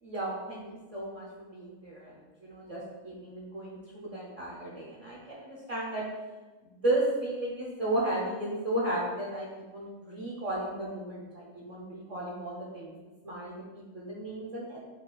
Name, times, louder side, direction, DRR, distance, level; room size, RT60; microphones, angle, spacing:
voice 1, 0.0-0.6 0.9-6.0 6.6-12.9 13.2-14.8, right 1 dB, 45° right, -5 dB, 0.5 m, -34 dB
5.4 x 2.4 x 3.8 m, 1.2 s
omnidirectional pair, 1.5 m